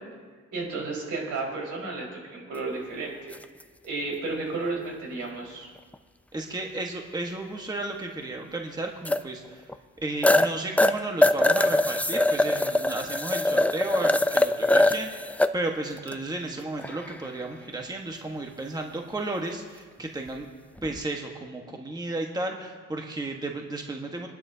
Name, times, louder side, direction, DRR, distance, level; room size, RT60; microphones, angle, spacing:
voice 1, 0.5-3.3 3.8-5.7, right 3 dB, 75° right, -2 dB, 4.8 m, -32 dB
sound 1, 3.3-3.4 5.9-6.0 9.0-9.2 9.7-9.8 10.2-10.5 10.8-15.5 16.0-16.1 16.8-17.3 20.8-21.0, left 1 dB, 5° left, 0.4 m, -22 dB
voice 2, 6.3-9.7 10.0-20.5 20.8-24.3, right 2 dB, 15° right, 2 dB, 1.3 m, -33 dB
24.0 x 11.5 x 2.8 m, 1.5 s
cardioid pair, 90°, 30 cm